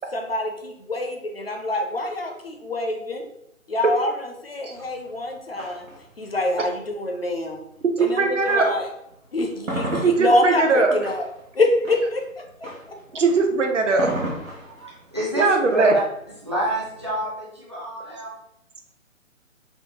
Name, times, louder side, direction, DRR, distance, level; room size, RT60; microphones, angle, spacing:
voice 1, 0.1-3.3 3.7-5.9 6.2-7.6 8.0-8.9 9.3-11.2 11.5-13.2, left 2 dB, 50° left, 0.4 m, -25 dB
sound 1, 4.7-8.9 9.3-17.2, right 1 dB, 80° right, 1.0 m, -35 dB
voice 2, 8.0-8.7 10.0-10.9 13.1-14.1 15.3-15.9, right 4 dB, 65° right, 0.6 m, -20 dB
voice 3, 14.8-15.5 15.7-15.9 16.4-18.3, right 1 dB, 20° right, 0.4 m, -28 dB
3.5 x 2.1 x 2.8 m
figure-of-eight pair, 140°, 41 cm